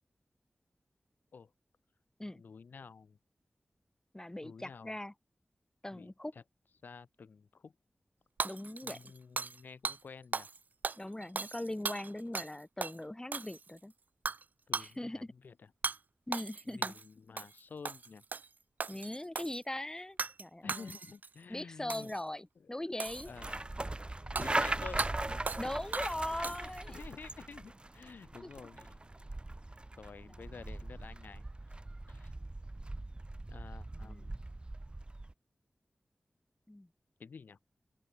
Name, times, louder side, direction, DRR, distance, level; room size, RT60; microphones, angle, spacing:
voice 1, 2.3-3.2 4.4-4.9 5.9-6.4 6.8-7.7 8.8-10.5 14.7-15.7 16.6-18.2 20.6-22.1 22.6-23.7 24.2-25.5 26.6-29.1 30.0-31.4 32.1-32.3 33.4-34.4 37.2-37.6, left 5 dB, 90° left, 5.1 m, -50 dB
voice 2, 4.1-5.1 5.8-6.3 8.4-9.1 11.0-13.9 14.8-15.3 16.3-16.9 18.9-21.0 21.5-23.3 25.6-27.0 28.4-28.5 30.3-30.4 34.0-34.3 36.7-36.9, left 1 dB, 20° left, 6.3 m, -40 dB
Hammer / Shatter, 8.4-9.6 9.8-10.0 10.3-10.6 10.8-12.5 12.8-13.0 13.3-13.8 14.3-14.4 14.7-14.9 15.8-16.0 16.3-17.1 17.4-17.6 17.8-18.5 18.8-19.6 20.2-20.4 20.7-21.3 21.9-22.2 23.0-23.6 24.4-24.5 25.0-25.1 25.5-25.7 25.9-26.8, right 4 dB, 70° right, 0.6 m, -37 dB
sound 1, 23.1-35.3, right 2 dB, 35° right, 7.4 m, -40 dB
open air
cardioid pair, 45°, 3 cm